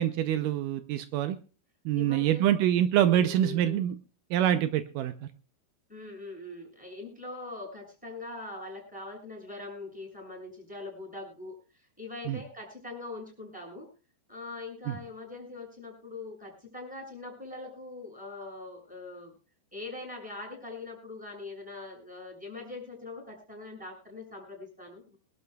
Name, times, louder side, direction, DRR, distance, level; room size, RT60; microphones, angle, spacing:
voice 1, 0.0-1.4 1.9-4.0 4.3-5.1 12.3-12.4 14.9-15.0, right 11 dB, 85° right, 9 dB, 1.8 m, -25 dB
voice 2, 1.9-2.5 3.1-3.8 5.9-11.5 12.0-13.9 14.3-19.4 19.7-25.2, left 2 dB, ahead, 1 dB, 6.7 m, -42 dB
23.5 x 12.5 x 2.3 m, 0.36 s
omnidirectional pair, 4.6 m